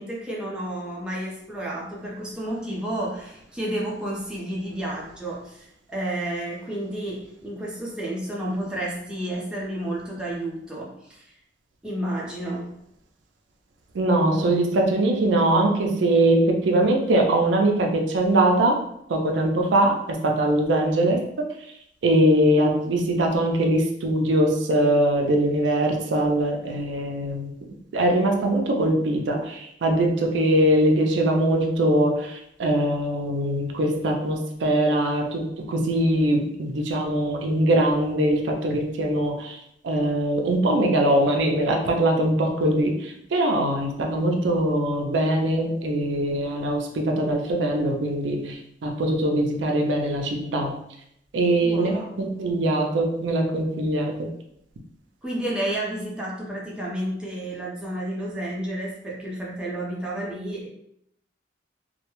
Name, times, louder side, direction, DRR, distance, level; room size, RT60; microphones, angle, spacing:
voice 1, 0.0-11.3 11.8-12.7 51.6-52.2 55.2-60.7, right 1 dB, 5° right, -5 dB, 0.5 m, -31 dB
voice 2, 13.9-18.8 19.1-21.2 22.0-39.6 39.8-50.8 51.3-54.3, right 1 dB, 70° right, 2 dB, 0.4 m, -22 dB
2.2 x 2.1 x 2.9 m, 0.74 s
head